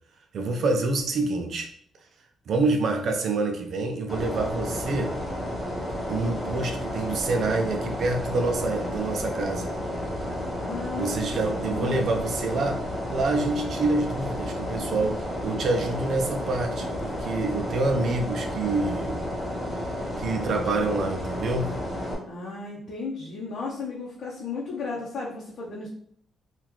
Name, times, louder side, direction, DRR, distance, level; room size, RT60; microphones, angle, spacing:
voice 1, 0.3-1.7 2.5-5.2 6.1-9.7 11.0-12.8 13.1-19.2 20.2-21.7, right 3 dB, 60° right, 4 dB, 0.5 m, -27 dB
sound 1, 4.1-22.1, left 1 dB, 5° left, 1.1 m, -32 dB
voice 2, 10.6-11.2 11.5-11.9 22.2-25.9, left 4 dB, 55° left, -4 dB, 0.7 m, -34 dB
3.7 x 2.3 x 3.0 m, 0.62 s
cardioid pair, 125°, 0 cm